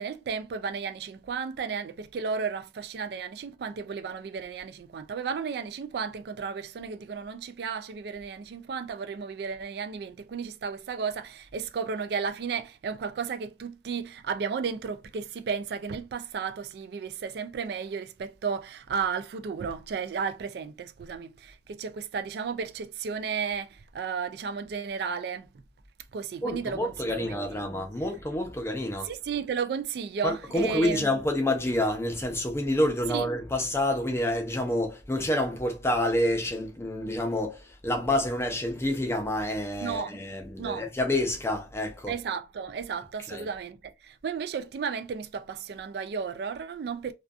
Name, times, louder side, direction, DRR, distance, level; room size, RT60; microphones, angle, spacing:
voice 1, 0.0-25.5 26.1-27.7 29.0-31.1 33.1-33.3 39.8-40.2 40.6-40.9 42.1-47.1, right 6 dB, 65° right, 0.3 m, -33 dB
voice 2, 26.4-29.1 30.2-42.2 43.3-43.5, left 1 dB, 15° left, 0.5 m, -28 dB
2.5 x 2.3 x 2.4 m
head